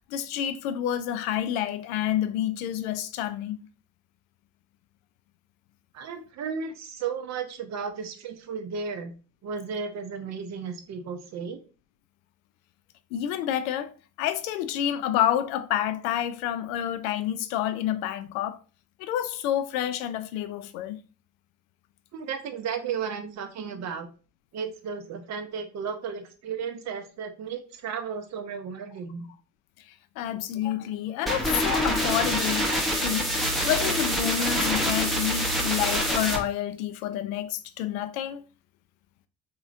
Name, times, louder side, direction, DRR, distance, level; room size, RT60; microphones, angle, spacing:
voice 1, 0.1-3.7 13.1-13.9 14.2-18.6 19.0-21.0 29.9-32.7 33.0-33.3 33.6-38.4, left 11 dB, 60° left, 0.5 m, -29 dB
voice 2, 5.9-9.1 9.4-11.6 22.1-24.1 24.5-29.3, right 6 dB, 35° right, 0.7 m, -34 dB
sound 1, 31.3-36.4, equal, ahead, 0.7 m, -26 dB
3.8 x 2.9 x 2.4 m
figure-of-eight pair, 55°, 47 cm